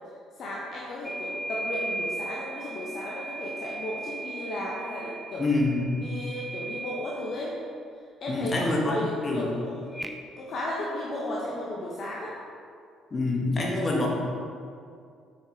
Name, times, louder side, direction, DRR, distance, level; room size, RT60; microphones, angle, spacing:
voice 1, 0.4-5.4 6.0-7.6 8.2-10.0 10.4-12.3, left 1 dB, 50° left, -4 dB, 1.2 m, -34 dB
sound 1, 1.0-7.1 9.9-10.1, right 2 dB, 5° right, 0.7 m, -37 dB
voice 2, 5.4-5.9 8.3-9.6 13.1-14.1, left 2 dB, 35° left, -1 dB, 1.8 m, -26 dB
8.7 x 6.2 x 3.8 m, 2.3 s
figure-of-eight pair, 50°, 0 cm